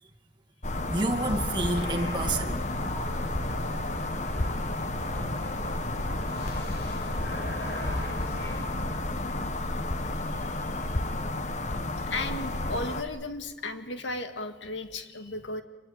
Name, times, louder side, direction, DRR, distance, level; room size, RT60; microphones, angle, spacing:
sound 1, 0.6-13.0, left 2 dB, 35° left, 1.4 m, -32 dB
voice 1, 0.8-2.6 7.2-7.3 7.6-7.7 8.9-9.0 11.5-11.7, right 2 dB, 25° right, 2.2 m, -30 dB
sound 2, 1.0-8.7, equal, 55° left, 7.0 m, -38 dB
voice 2, 10.1-11.0 12.1-15.6, left 2 dB, 75° left, 2.1 m, -36 dB
26.0 x 22.0 x 9.0 m
head